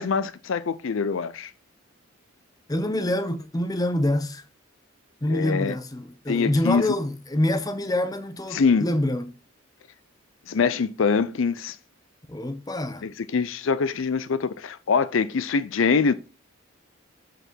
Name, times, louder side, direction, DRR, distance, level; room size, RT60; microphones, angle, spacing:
voice 1, 0.0-1.5 5.3-5.8 6.3-6.8 8.5-8.9 10.5-11.8 13.0-16.1, left 5 dB, 70° left, 0.5 m, -24 dB
voice 2, 2.7-4.4 5.2-9.3 12.3-13.1, left 1 dB, 20° left, 0.7 m, -26 dB
8.2 x 4.1 x 4.5 m
head